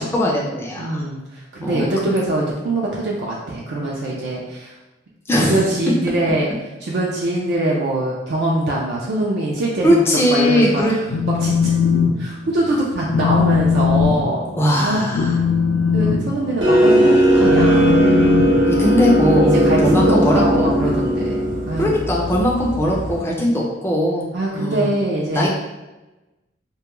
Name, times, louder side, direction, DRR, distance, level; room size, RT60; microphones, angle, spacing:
voice 1, 0.0-1.0 1.6-1.8 5.3-5.6 9.8-10.9 14.6-15.4 18.7-19.6 19.8-20.7 21.8-24.3 24.5-24.9 25.3-25.5, equal, 15° left, -3 dB, 0.3 m, -19 dB
voice 2, 0.8-4.7 5.4-6.5 6.8-10.0 10.3-11.0 11.3-11.7 12.2-14.5 14.8-15.1 15.9-18.0 19.4-22.0 24.3-25.5, right 1 dB, 60° right, -4 dB, 0.4 m, -23 dB
Telephone, 10.9-12.1 12.5-12.7 13.1-19.2, left 6 dB, 90° left, 0.3 m, -20 dB
sound 1, 16.6-23.2, equal, 85° right, 0.9 m, -17 dB
2.2 x 2.2 x 2.9 m, 1.1 s
head